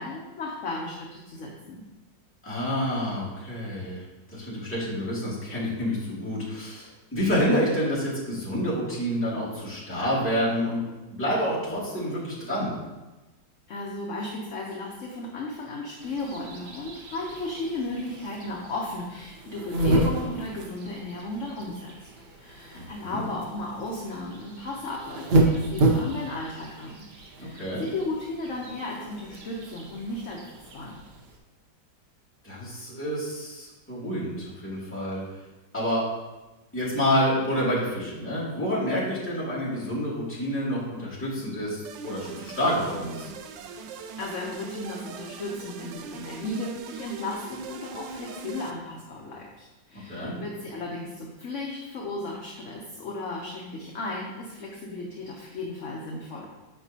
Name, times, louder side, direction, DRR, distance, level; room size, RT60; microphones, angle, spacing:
voice 1, 0.0-1.8 13.7-22.1 22.4-27.0 27.4-30.4 30.7-31.0 44.2-56.5, left 2 dB, 55° left, -3 dB, 1.0 m, -35 dB
voice 2, 2.4-4.0 4.3-10.8 11.1-12.7 22.7-23.2 27.4-27.8 32.4-35.2 35.7-36.0 36.7-43.3 50.1-50.4, equal, 5° left, -9 dB, 2.2 m, -28 dB
sound 1, 16.0-31.4, right 2 dB, 55° right, 0.7 m, -30 dB
sound 2, 41.8-48.7, right 5 dB, 85° right, 1.2 m, -41 dB
8.0 x 5.4 x 2.8 m, 1.1 s
omnidirectional pair, 1.9 m